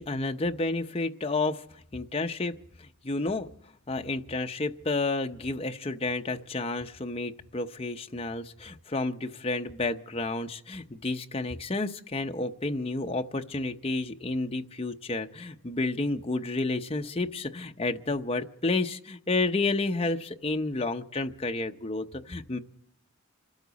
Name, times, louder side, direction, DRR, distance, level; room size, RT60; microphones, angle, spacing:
voice 1, 0.0-1.6 1.9-3.5 3.9-22.6, left 2 dB, 30° left, 5 dB, 0.8 m, -31 dB
26.5 x 13.0 x 4.1 m, 0.75 s
head